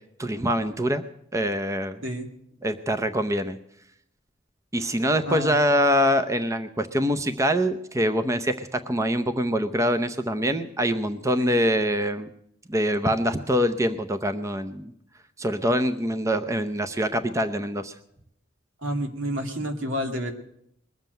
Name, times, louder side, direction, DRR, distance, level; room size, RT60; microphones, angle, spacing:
voice 1, 0.2-1.0 1.3-2.0 2.6-3.6 4.7-12.3 12.7-14.9 15.4-17.9, equal, 15° right, 10 dB, 0.6 m, -24 dB
voice 2, 18.8-20.3, equal, 80° right, 4 dB, 2.3 m, -29 dB
21.0 x 7.4 x 9.2 m, 0.73 s
head